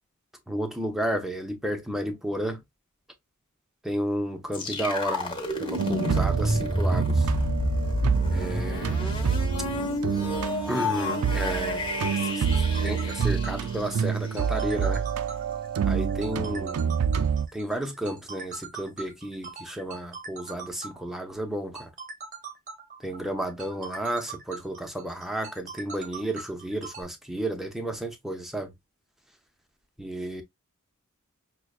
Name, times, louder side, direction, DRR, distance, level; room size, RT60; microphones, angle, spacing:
voice 1, 0.5-2.6 3.8-7.3 8.3-9.2 10.7-11.8 12.1-15.1 15.9-17.0 17.5-21.9 23.0-28.7 30.0-30.4, right 1 dB, ahead, 0.6 m, -32 dB
sound 1, 4.5-14.4, left 1 dB, 25° left, 1.1 m, -29 dB
sound 2, 5.8-17.5, right 7 dB, 90° right, 0.4 m, -28 dB
sound 3, 12.3-27.0, right 4 dB, 35° right, 0.8 m, -42 dB
5.9 x 2.2 x 2.3 m
head